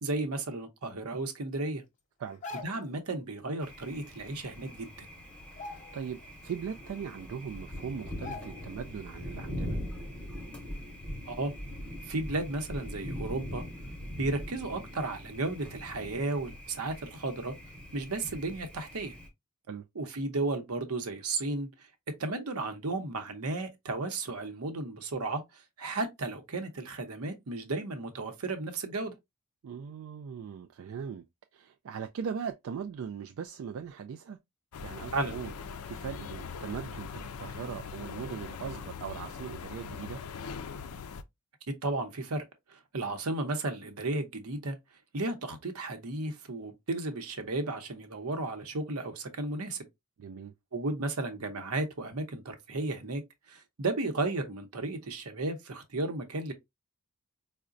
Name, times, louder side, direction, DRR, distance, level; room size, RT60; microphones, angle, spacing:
voice 1, 0.0-1.8 2.6-4.9 11.3-11.5 12.1-13.6 14.2-17.5 17.9-19.1 19.9-21.7 22.2-29.1 35.1-35.4 41.7-44.8 45.1-49.8 50.7-53.2 53.5-56.5, right 2 dB, 85° right, 0.8 m, -34 dB
sound 1, 2.2-3.0 4.4-4.5 4.8-5.1 5.5-6.3 6.7-6.8 7.6-7.7 8.2-8.8 9.2-9.4, left 3 dB, 35° left, 0.8 m, -44 dB
Thunder, 3.6-19.3, equal, 5° left, 0.8 m, -42 dB
voice 2, 5.5-9.8 19.7-19.9 29.6-31.2 31.5-34.4 34.8-35.5 35.9-40.2 50.2-50.5, right 7 dB, 65° right, 0.3 m, -39 dB
sound 2, 34.7-41.2, left 6 dB, 80° left, 0.4 m, -41 dB
4.8 x 2.1 x 2.5 m
head